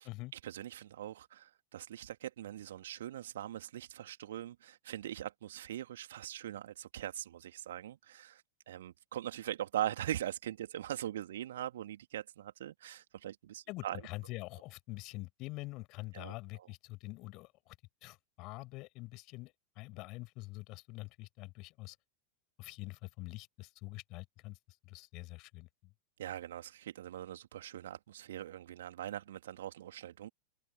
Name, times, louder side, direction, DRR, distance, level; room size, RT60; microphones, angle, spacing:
voice 1, 0.4-14.0 16.1-16.7 26.2-30.3, right 12 dB, 60° right, 3.0 m, -41 dB
voice 2, 13.7-17.8 18.0-22.0 22.6-24.6 24.8-25.7, left 22 dB, 40° left, 6.8 m, -45 dB
figure-of-eight pair, 90°, 0 cm